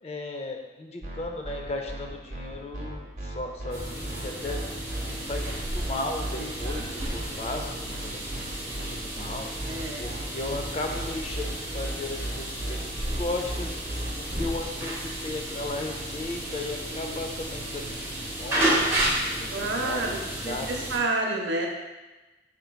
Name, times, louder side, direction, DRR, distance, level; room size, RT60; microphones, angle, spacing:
voice 1, 0.0-4.6 5.0-13.7 14.2-18.1 18.4-20.9, left 2 dB, 35° left, 3 dB, 0.4 m, -36 dB
sound 1, 1.0-14.5, right 1 dB, 40° right, 0.8 m, -35 dB
sound 2, 3.7-21.0, right 1 dB, 15° right, 0.8 m, -32 dB
voice 2, 6.4-7.3 9.7-10.1 16.9-17.2 19.5-20.2 20.4-21.7, right 2 dB, 85° right, 1 dB, 0.6 m, -30 dB
4.4 x 3.8 x 2.2 m, 1.1 s
head